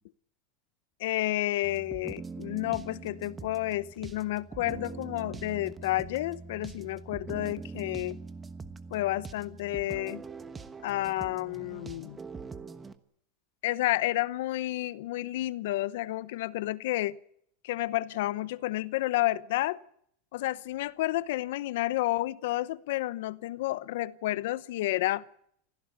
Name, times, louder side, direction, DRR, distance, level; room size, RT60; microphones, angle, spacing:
voice 1, 1.0-8.2 8.9-10.2 10.8-12.2 13.6-17.2 17.6-19.8 20.3-25.2, left 16 dB, 70° left, 0.9 m, -30 dB
sound 1, 1.6-12.9, right 4 dB, 15° right, 1.1 m, -43 dB
26.0 x 16.0 x 8.2 m
supercardioid pair, 160°, 0 cm